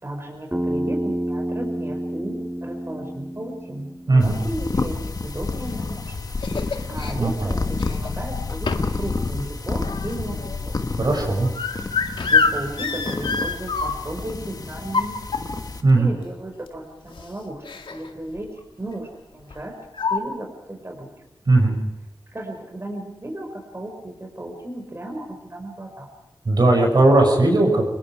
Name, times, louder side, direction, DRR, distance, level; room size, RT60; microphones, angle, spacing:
voice 1, 0.0-5.0 5.2-6.2 6.6-10.7 12.0-15.2 16.0-17.6 17.9-19.7 20.1-21.1 22.3-26.1, right 1 dB, 30° right, 1 dB, 5.6 m, -34 dB
Bass guitar, 0.5-4.8, right 1 dB, 10° right, 2.5 m, -29 dB
sound 1, 4.2-15.8, left 3 dB, 50° left, 1.7 m, -30 dB
sound 2, 5.7-7.1 7.7-8.2 8.7-9.0 9.4-14.2 14.8-15.8 16.7-16.8 17.1-17.3 17.6-18.1 18.4-18.6 19.5-19.6 19.9-20.2, left 4 dB, 80° left, 2.1 m, -26 dB
voice 2, 11.0-11.5 15.8-16.1 21.5-21.8 26.5-28.0, right 2 dB, 55° right, 1 dB, 6.7 m, -17 dB
27.5 x 21.5 x 4.9 m, 0.93 s
wide cardioid pair, 75°, 8 cm